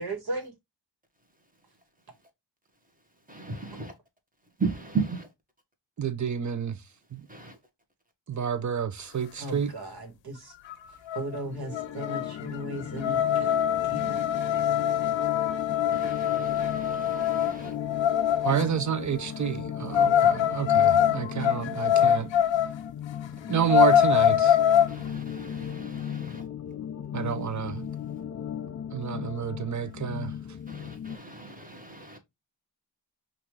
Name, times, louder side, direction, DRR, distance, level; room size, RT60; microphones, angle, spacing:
voice 1, 0.0-0.5 9.4-10.5 11.1-13.6 13.8-14.2, right 1 dB, 55° right, 1.7 m, -36 dB
voice 2, 3.3-3.9 4.6-5.3 7.3-7.6 15.9-17.7 24.9-26.4 30.7-32.2, right 4 dB, 20° right, 1.3 m, -36 dB
voice 3, 6.0-6.8 7.1-7.3 8.3-9.7 18.4-22.3 23.5-24.6 27.1-27.9 28.9-30.3, right 8 dB, 40° right, 0.6 m, -29 dB
sound 1, 10.7-10.8 11.1-11.4 11.7-18.6 19.9-22.7 23.1-23.2 23.6-24.9, left 9 dB, 80° left, 0.6 m, -23 dB
sound 2, 11.4-31.2, left 8 dB, 40° left, 0.4 m, -37 dB
5.5 x 2.7 x 3.2 m
wide cardioid pair, 100°, 44 cm